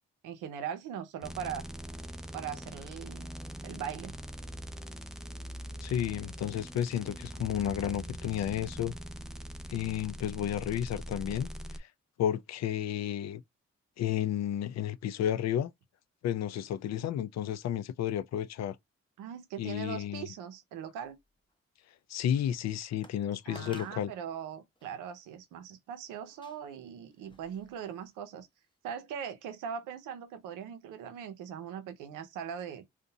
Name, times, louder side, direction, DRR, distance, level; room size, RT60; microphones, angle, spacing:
voice 1, 0.2-1.6 2.3-3.3 3.6-4.2 19.2-21.2 23.5-28.5 28.8-32.8, right 8 dB, 85° right, 0.5 m, -40 dB
sound 1, 1.2-11.8, equal, ahead, 0.4 m, -42 dB
voice 2, 5.8-9.0 9.7-11.5 11.8-11.9 12.2-13.4 14.0-15.7 16.2-18.8 19.6-20.3 22.1-24.1, left 10 dB, 60° left, 0.4 m, -32 dB
sound 2, 21.0-21.6 22.1-22.2 23.0-23.2 23.6-24.0 24.8-24.9 26.3-28.2 28.6-28.7, left 2 dB, 15° left, 0.8 m, -55 dB
2.6 x 2.1 x 2.6 m
supercardioid pair, 40°, 30 cm